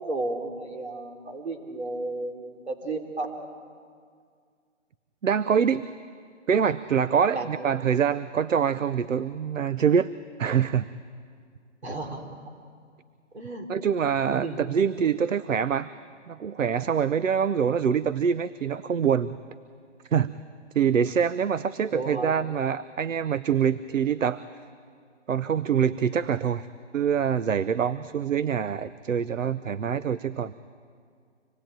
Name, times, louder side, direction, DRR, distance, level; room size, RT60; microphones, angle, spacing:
voice 1, 0.0-3.4 7.3-7.7 11.8-12.2 13.3-13.7 14.3-14.6 15.0-15.2 21.9-22.3, right 2 dB, 60° right, 3 dB, 3.3 m, -33 dB
voice 2, 5.2-5.8 6.5-10.1 10.4-10.8 13.7-15.9 16.3-19.4 20.1-20.4 20.7-24.4 25.3-26.7 26.9-30.5, right 7 dB, 85° right, 15 dB, 0.8 m, -25 dB
26.0 x 19.0 x 9.0 m, 2.1 s
hypercardioid pair, 180°, 38 cm